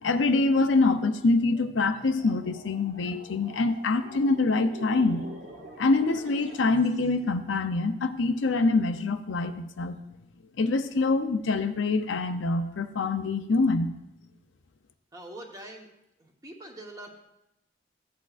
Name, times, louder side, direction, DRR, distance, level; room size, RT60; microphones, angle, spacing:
voice 1, 0.0-5.3 5.8-10.0 10.6-14.0, left 3 dB, 80° left, 9 dB, 0.6 m, -25 dB
sound 1, 1.4-7.2, right 2 dB, 80° right, 1.6 m, -46 dB
voice 2, 15.1-15.9 16.2-17.2, right 1 dB, 20° right, 1 dB, 1.0 m, -44 dB
15.0 x 8.4 x 2.5 m, 0.88 s
head